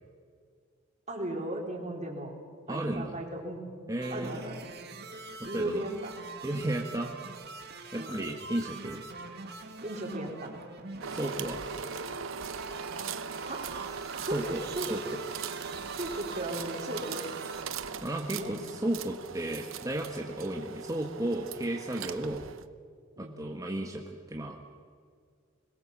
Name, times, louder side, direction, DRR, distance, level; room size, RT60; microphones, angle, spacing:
voice 1, 1.1-2.3 2.7-3.7 4.1-4.7 5.4-6.1 8.0-8.2 9.8-10.5 13.5-15.0 16.0-17.2 18.3-18.5 23.2-23.4, right 1 dB, 35° right, 0 dB, 4.4 m, -36 dB
voice 2, 2.7-3.1 3.9-4.3 5.4-5.8 6.4-7.1 7.9-9.0 11.1-11.6 14.2-14.6 14.9-15.0 18.0-22.4 23.2-24.0 24.3-24.6, right 1 dB, 15° right, 0 dB, 1.6 m, -33 dB
sound 1, 4.0-17.6, right 4 dB, 55° right, 2.2 m, -44 dB
sound 2, 11.0-22.6, right 6 dB, 85° right, 0.9 m, -40 dB
25.0 x 21.5 x 7.4 m, 2.1 s
head